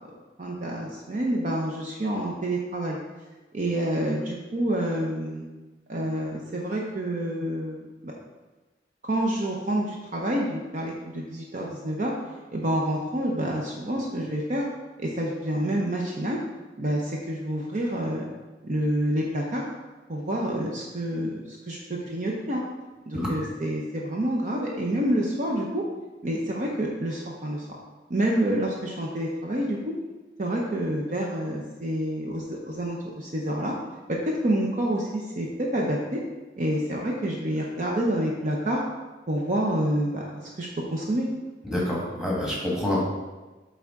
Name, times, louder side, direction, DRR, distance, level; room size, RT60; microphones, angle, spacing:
voice 1, 0.4-3.0 3.5-5.5 5.9-8.1 9.1-12.1 12.5-14.6 15.0-16.4 16.8-18.3 18.6-19.6 20.1-22.6 23.1-25.8 26.2-27.7 28.1-29.9 30.4-33.7 34.1-36.2 36.6-38.8 39.3-40.2 40.6-41.3, right 1 dB, 40° right, -2 dB, 0.7 m, -28 dB
voice 2, 41.6-43.0, left 1 dB, 5° right, -5 dB, 1.5 m, -27 dB
8.4 x 3.5 x 3.7 m, 1.2 s
head